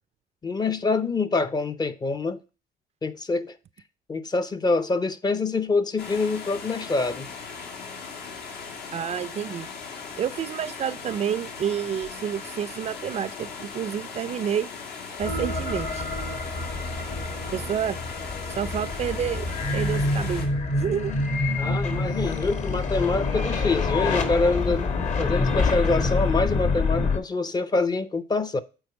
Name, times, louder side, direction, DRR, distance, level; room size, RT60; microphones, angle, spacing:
voice 1, 0.4-2.4 3.0-3.6 4.1-7.3 21.6-24.9 25.2-28.6, left 3 dB, 25° left, 0.6 m, -25 dB
sound 1, 6.0-20.5, left 5 dB, 70° left, 1.9 m, -38 dB
voice 2, 8.9-9.7 10.2-14.7 15.2-16.0 17.5-18.0 18.5-21.1, right 9 dB, 40° right, 0.4 m, -29 dB
sound 2, 15.2-27.2, left 3 dB, 45° left, 1.3 m, -26 dB
8.0 x 4.3 x 4.5 m
cardioid pair, 110°, 17 cm